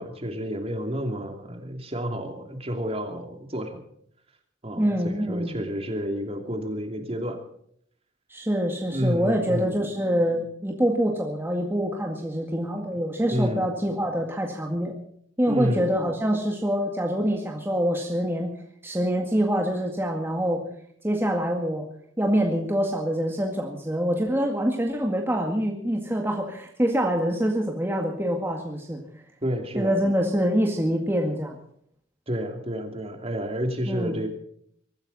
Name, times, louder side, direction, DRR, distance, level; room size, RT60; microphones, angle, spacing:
voice 1, 0.0-3.8 4.6-7.4 8.9-9.7 13.3-13.7 15.5-15.9 29.4-29.9 32.3-34.3, equal, 30° right, 5 dB, 2.8 m, -30 dB
voice 2, 4.8-5.5 8.3-15.0 15.4-18.5 18.8-20.6 21.0-21.9 22.2-29.0 29.8-31.6 33.9-34.2, equal, 10° right, 1 dB, 1.9 m, -25 dB
23.5 x 14.5 x 4.2 m, 0.67 s
head